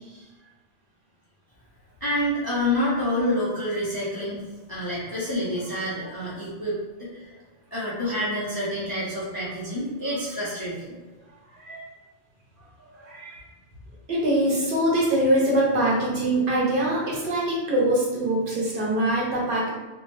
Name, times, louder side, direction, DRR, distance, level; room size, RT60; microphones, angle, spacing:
voice 1, 2.0-4.4 4.7-7.3 7.7-10.8, left 1 dB, 30° left, -8 dB, 0.5 m, -28 dB
voice 2, 13.0-13.4 14.1-19.7, right 1 dB, 55° right, -5 dB, 0.8 m, -23 dB
2.6 x 2.1 x 3.0 m, 1.2 s
omnidirectional pair, 1.1 m